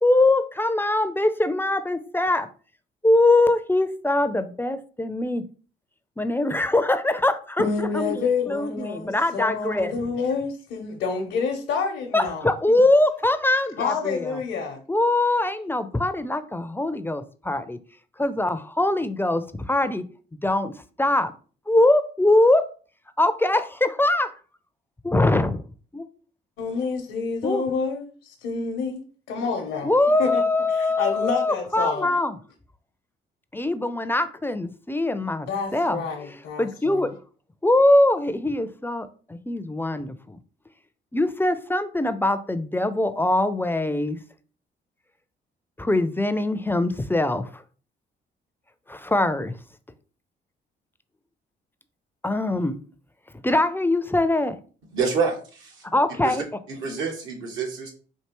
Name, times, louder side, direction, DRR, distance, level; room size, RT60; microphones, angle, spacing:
voice 1, 0.0-2.5 3.0-5.4 6.2-7.6 7.9-9.9 12.1-14.3 14.9-17.8 18.2-20.0 20.4-20.7 21.0-21.3 21.7-22.6 23.2-24.3 25.0-25.6 25.9-26.1 27.4-27.6 29.8-32.4 33.5-36.0 36.6-37.1 37.6-40.4 41.1-44.2 45.8-47.6 48.9-49.5 52.2-52.8 53.4-54.6 55.9-56.4, left 2 dB, 10° left, 0.4 m, -22 dB
voice 2, 7.6-12.8 13.8-14.8 26.6-29.9 30.2-30.4 30.7-32.1 35.5-37.1, left 5 dB, 80° left, 0.8 m, -28 dB
voice 3, 54.9-55.8 56.2-56.4 56.7-57.9, right 5 dB, 80° right, 1.2 m, -27 dB
4.5 x 2.7 x 2.9 m
supercardioid pair, 70°, 20 cm